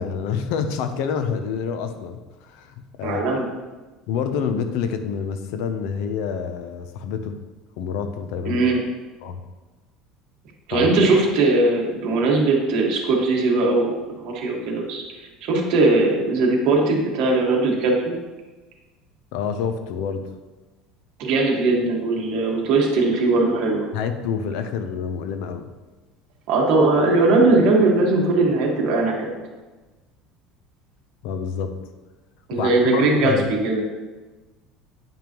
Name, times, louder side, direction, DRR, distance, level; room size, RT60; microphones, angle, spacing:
voice 1, 0.0-3.2 4.1-7.4 7.8-8.8 9.2-9.4 10.7-10.9 19.3-20.3 23.9-25.6 31.2-31.7 32.5-33.5, left 6 dB, 70° left, 8 dB, 0.7 m, -27 dB
voice 2, 3.0-3.4 8.4-8.8 10.7-15.0 15.4-18.1 21.2-23.8 26.5-29.3 32.5-33.3 33.6-33.8, right 3 dB, 55° right, -1 dB, 1.6 m, -19 dB
9.2 x 5.2 x 3.0 m, 1.2 s
cardioid pair, 155°, 0 cm